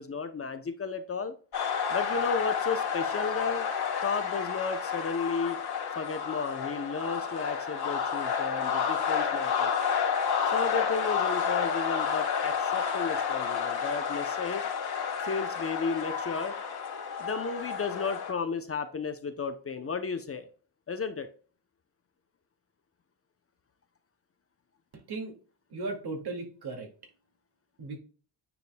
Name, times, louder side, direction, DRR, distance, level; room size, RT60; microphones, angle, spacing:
voice 1, 0.0-1.3 1.9-3.7 4.0-5.6 6.0-9.7 10.5-14.7 15.2-16.5 17.2-20.5 20.9-21.3, left 5 dB, 30° left, 8 dB, 0.7 m, -33 dB
sound 1, 1.5-18.3, left 6 dB, 55° left, 1.8 m, -30 dB
voice 2, 24.9-25.4 25.7-26.9 27.8-28.0, right 3 dB, 60° right, 2 dB, 2.2 m, -36 dB
9.3 x 5.2 x 2.2 m, 0.39 s
cardioid pair, 115°, 44 cm